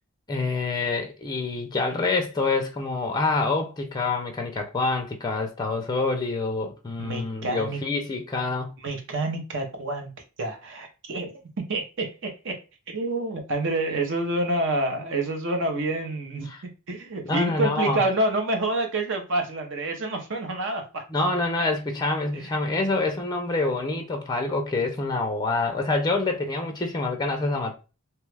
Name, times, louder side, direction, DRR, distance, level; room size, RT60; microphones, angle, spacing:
voice 1, 0.3-8.7 16.5-16.6 17.3-18.0 21.1-27.7, left 3 dB, 20° left, 0.4 m, -26 dB
voice 2, 7.0-7.8 8.8-10.1 10.4-11.4 11.7-12.6 12.9-21.0 22.3-22.6, right 2 dB, 60° right, 0.7 m, -28 dB
2.9 x 2.3 x 3.2 m
head